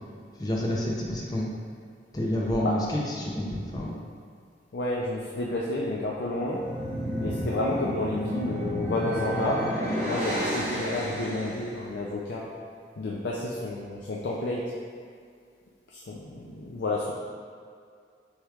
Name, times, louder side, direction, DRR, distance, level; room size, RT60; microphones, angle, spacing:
voice 1, 0.4-1.5 2.1-3.9, left 1 dB, 20° left, -3 dB, 0.6 m, -29 dB
voice 2, 4.7-6.6 7.2-9.7 10.0-12.5 13.0-14.6 15.9-17.1, left 2 dB, 75° left, -4 dB, 0.4 m, -30 dB
sound 1, 6.4-11.7, equal, 10° right, 1.3 m, -31 dB
6.3 x 3.2 x 2.4 m, 2.2 s
head